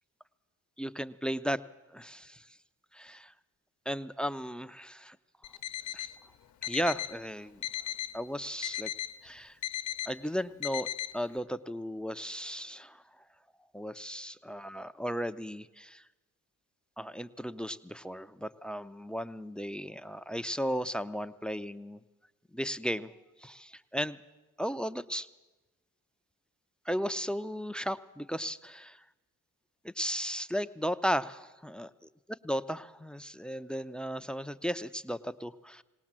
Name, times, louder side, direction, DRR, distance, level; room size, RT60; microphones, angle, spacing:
voice 1, 0.8-1.6 1.9-2.6 2.9-3.3 3.9-5.2 5.5-5.6 5.9-6.1 6.6-7.6 8.1-8.9 9.2-9.6 10.1-13.2 13.7-16.1 17.0-22.0 22.5-24.2 24.6-25.3 26.8-29.0 29.8-31.9 32.4-35.8, equal, 5° left, 13 dB, 0.6 m, -35 dB
Alarm, 5.4-6.1 6.6-7.2 7.6-8.2 8.6-9.2 9.6-10.1 10.6-11.1, left 12 dB, 70° left, 1.0 m, -36 dB
20.0 x 18.0 x 7.4 m, 1.1 s
cardioid pair, 90°, 30 cm